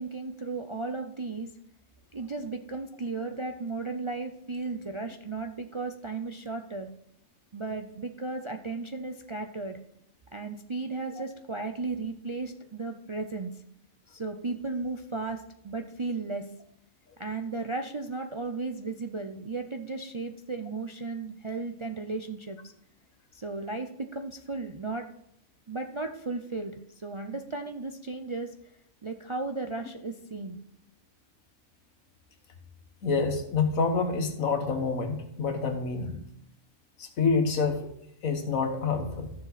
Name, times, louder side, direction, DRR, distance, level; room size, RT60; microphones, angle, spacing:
voice 1, 0.0-1.5 2.1-6.9 7.5-9.8 10.3-13.6 14.1-16.5 17.2-22.7 23.3-25.1 25.7-28.5 29.0-30.6, right 3 dB, 45° right, 5 dB, 0.4 m, -35 dB
voice 2, 33.0-36.2 37.0-37.9 38.2-39.3, left 4 dB, 90° left, 6 dB, 1.7 m, -27 dB
13.0 x 7.2 x 4.1 m, 0.73 s
omnidirectional pair, 1.4 m